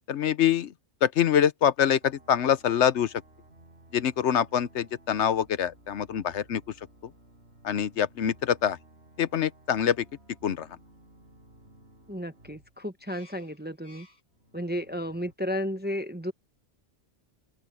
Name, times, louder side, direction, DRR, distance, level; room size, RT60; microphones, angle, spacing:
voice 1, 0.1-0.7 1.0-3.1 3.9-6.6 7.6-8.8 9.2-10.0 10.4-10.7, left 9 dB, 75° left, 1.0 m, -25 dB
sound 1, 2.0-15.3, right 1 dB, 65° right, 5.5 m, -56 dB
voice 2, 12.1-14.1 14.5-16.3, equal, 10° right, 0.8 m, -33 dB
open air
omnidirectional pair, 1.2 m